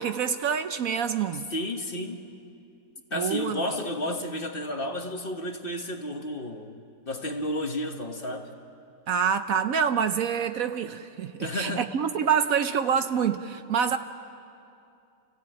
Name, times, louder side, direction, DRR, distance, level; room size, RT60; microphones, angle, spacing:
voice 1, 0.0-1.5 3.1-3.6 9.1-14.0, right 7 dB, 65° right, 10 dB, 1.1 m, -26 dB
voice 2, 1.5-2.2 3.1-8.5 11.4-11.9, left 1 dB, 35° left, 4 dB, 1.4 m, -32 dB
29.5 x 16.0 x 9.0 m, 2.6 s
omnidirectional pair, 1.7 m